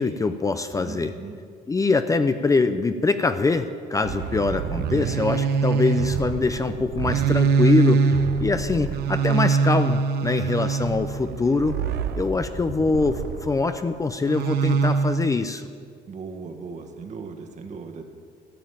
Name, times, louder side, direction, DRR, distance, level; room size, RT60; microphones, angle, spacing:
voice 1, 0.0-1.1 1.7-11.8 12.1-15.7, left 3 dB, 20° left, 9 dB, 0.5 m, -23 dB
voice 2, 0.8-1.4 8.7-8.9 16.1-18.0, right 5 dB, 45° right, 5 dB, 1.6 m, -38 dB
sound 1, 4.0-13.6 14.2-15.4, right 5 dB, 70° right, 0.8 m, -24 dB
13.5 x 7.3 x 9.0 m, 2.1 s
cardioid pair, 110°, 17 cm